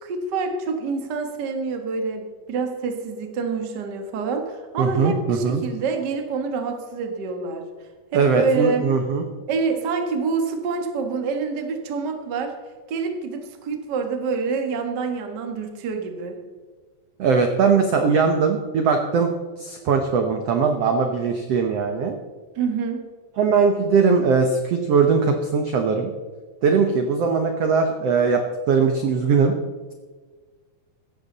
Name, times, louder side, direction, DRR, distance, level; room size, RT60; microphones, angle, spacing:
voice 1, 0.0-7.6 8.1-8.8 9.5-12.5 12.9-16.4 22.5-23.0, right 4 dB, 40° right, 4 dB, 1.5 m, -27 dB
voice 2, 4.8-5.6 8.1-9.2 17.2-19.3 19.6-22.2 23.4-26.1 26.6-28.4 28.7-29.5, right 5 dB, 75° right, 5 dB, 1.4 m, -20 dB
16.5 x 13.0 x 4.1 m, 1.4 s
omnidirectional pair, 4.2 m